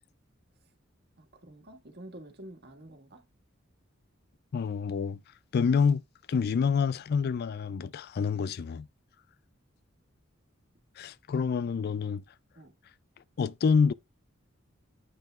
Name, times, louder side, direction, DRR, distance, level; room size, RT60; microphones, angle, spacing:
voice 1, 1.2-3.2 12.6-12.8, right 1 dB, 55° right, 1.7 m, -48 dB
voice 2, 4.5-5.2 5.5-6.0 6.3-8.9 11.0-12.2 13.4-13.9, left 5 dB, 50° left, 0.3 m, -27 dB
9.0 x 5.7 x 2.4 m
head